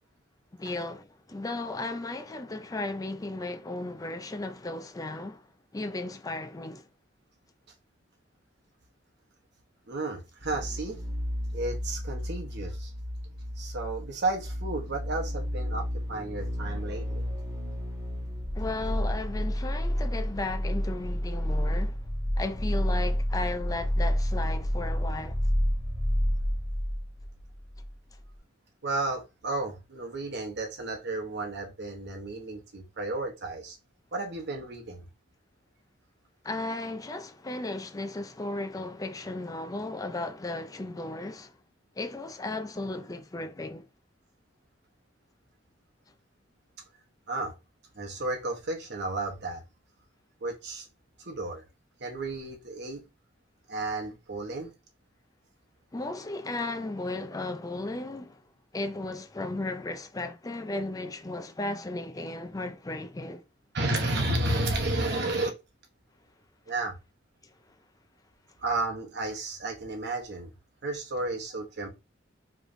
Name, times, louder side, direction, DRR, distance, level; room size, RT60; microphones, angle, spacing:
voice 1, 0.5-6.9 18.5-22.0 22.4-25.4 36.4-41.6 42.0-43.9 55.9-58.4 58.7-63.4 67.4-67.5, left 2 dB, 20° left, 0.4 m, -35 dB
voice 2, 9.9-11.0 11.5-12.9 13.6-17.2 28.8-33.8 34.1-35.1 47.3-47.5 48.0-49.6 50.4-50.9 51.2-51.6 52.0-53.0 53.7-54.7 63.7-65.5 66.7-67.0 68.6-70.5 70.8-71.9, right 2 dB, 55° right, 1.0 m, -32 dB
sound 1, 10.4-27.9 28.2-28.3, equal, 15° right, 1.4 m, -30 dB
5.1 x 3.2 x 2.6 m
head